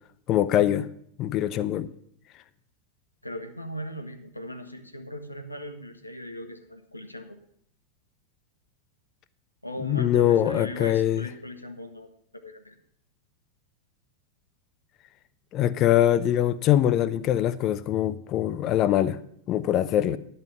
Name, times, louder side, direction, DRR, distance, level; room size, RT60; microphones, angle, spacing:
voice 1, 0.3-0.9 1.2-1.9 9.8-11.2 15.5-19.2 19.5-20.2, left 11 dB, 35° left, 0.5 m, -23 dB
voice 2, 3.2-7.4 9.6-12.1 12.3-12.8, equal, 85° left, 0.9 m, -38 dB
10.5 x 5.5 x 6.9 m
figure-of-eight pair, 90°, 0 cm